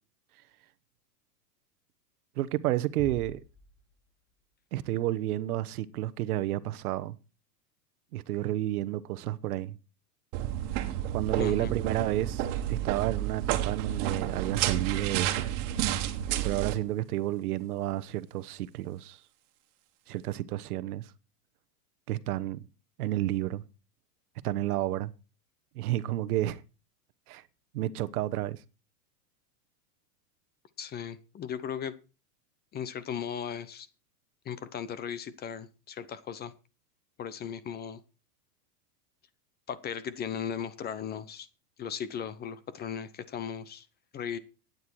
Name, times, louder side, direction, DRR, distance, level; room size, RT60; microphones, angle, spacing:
voice 1, 2.4-3.4 4.7-7.1 8.1-9.8 11.1-15.5 16.4-19.2 20.1-21.1 22.1-22.6 23.0-23.6 24.4-25.1 25.7-26.6 27.3-27.4 27.7-28.6, right 14 dB, 70° right, 1.1 m, -31 dB
sound 1, 3.0-4.4, left 2 dB, 5° left, 1.2 m, -47 dB
sound 2, 10.3-16.7, right 12 dB, 50° right, 1.8 m, -30 dB
voice 2, 11.4-11.7 30.8-31.9 32.7-33.9 34.4-36.5 37.2-38.0 39.7-41.5 41.8-43.9 44.1-44.4, left 8 dB, 20° left, 0.8 m, -37 dB
12.5 x 9.6 x 4.7 m
supercardioid pair, 135°, 47 cm